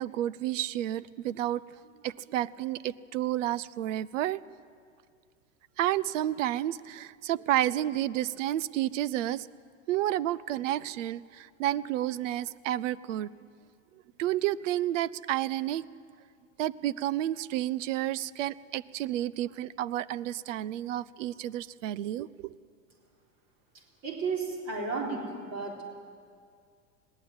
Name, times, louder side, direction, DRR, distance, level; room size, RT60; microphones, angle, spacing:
voice 1, 0.0-1.6 2.0-4.4 5.8-9.5 9.9-13.3 14.2-15.8 16.6-22.6, right 13 dB, 70° right, 21 dB, 0.8 m, -30 dB
voice 2, 24.0-25.9, right 4 dB, 40° right, 0 dB, 4.1 m, -33 dB
21.0 x 17.0 x 8.9 m, 2.1 s
hypercardioid pair, 95°, 39 cm